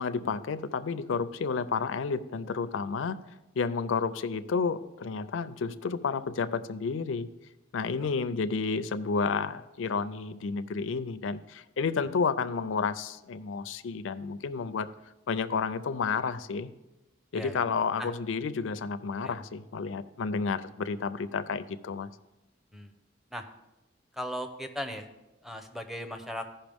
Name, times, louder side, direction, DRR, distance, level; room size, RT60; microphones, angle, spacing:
voice 1, 0.0-3.2 3.6-7.3 7.7-14.9 15.3-16.7 17.3-22.1, left 5 dB, 90° left, 13 dB, 0.5 m, -31 dB
voice 2, 24.1-25.1 25.4-26.5, equal, ahead, 6 dB, 0.6 m, -37 dB
15.0 x 5.6 x 3.5 m, 0.98 s
head